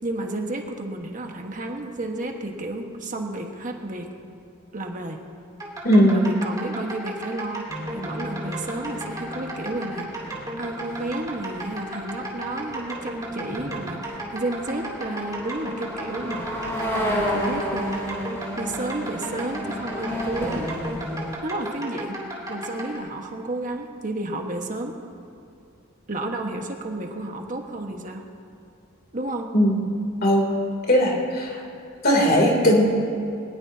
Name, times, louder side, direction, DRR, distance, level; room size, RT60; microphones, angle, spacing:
voice 1, 0.0-4.1 4.7-5.2 6.1-7.6 7.9-16.6 16.9-18.2 18.6-20.7 21.4-22.2 22.5-24.9 26.1-28.2 29.1-29.5, right 2 dB, 40° right, 2 dB, 1.5 m, -31 dB
sound 1, 5.6-23.0, right 2 dB, 20° right, 3.0 m, -35 dB
voice 2, 5.8-6.2 29.5-29.8 30.2-30.5 30.9-31.6 32.0-32.8, equal, 50° left, -1 dB, 3.2 m, -18 dB
sound 2, 7.7-21.3, equal, 15° left, 4.2 m, -32 dB
20.5 x 20.0 x 2.9 m, 2.6 s
head